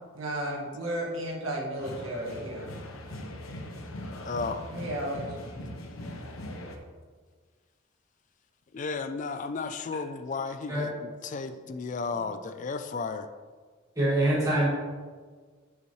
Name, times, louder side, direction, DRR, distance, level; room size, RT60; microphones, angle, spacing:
voice 1, 0.1-2.7 4.7-5.2, right 1 dB, 85° right, -3 dB, 1.8 m, -33 dB
sound 1, 1.8-6.8, left 1 dB, 90° left, 0.9 m, -40 dB
voice 2, 4.2-4.6 8.7-10.9 11.2-13.3, left 4 dB, 35° left, 9 dB, 0.3 m, -33 dB
voice 3, 14.0-14.7, right 1 dB, 15° right, -8 dB, 2.0 m, -25 dB
9.9 x 5.6 x 3.1 m, 1.5 s
head